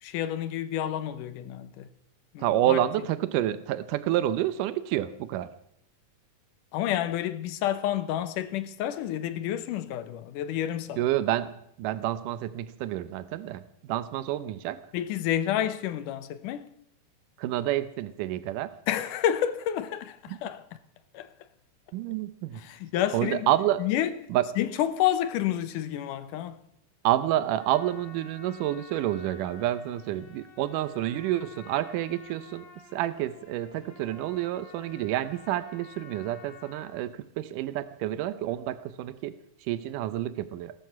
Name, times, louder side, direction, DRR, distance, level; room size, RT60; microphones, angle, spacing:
voice 1, 0.0-1.9 2.3-2.8 6.7-11.0 14.9-16.7 18.9-20.6 21.1-21.3 22.6-23.5 23.8-24.2 24.6-26.6, left 11 dB, 85° left, 2.5 m, -29 dB
voice 2, 2.4-5.5 11.0-11.5 11.8-14.8 17.4-18.7 20.3-20.4 21.9-22.6 23.1-23.8 24.3-24.4 27.0-32.7 32.9-39.3 39.6-40.7, right 13 dB, 90° right, 2.4 m, -29 dB
Trumpet, 27.6-37.1, left 5 dB, 65° left, 3.8 m, -51 dB
18.0 x 13.0 x 5.8 m
omnidirectional pair, 3.6 m